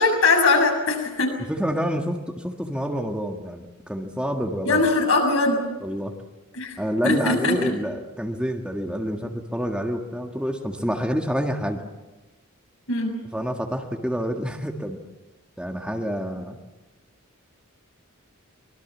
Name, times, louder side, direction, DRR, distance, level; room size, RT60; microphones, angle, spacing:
voice 1, 0.0-1.3 4.7-5.7 6.5-6.8 7.0-7.7 12.9-13.2, left 3 dB, 65° left, 3 dB, 6.9 m, -21 dB
voice 2, 1.5-4.8 5.8-6.1 6.8-11.8 13.3-15.0 15.6-16.6, equal, 5° right, 2 dB, 1.7 m, -28 dB
25.0 x 22.5 x 7.4 m, 1.1 s
head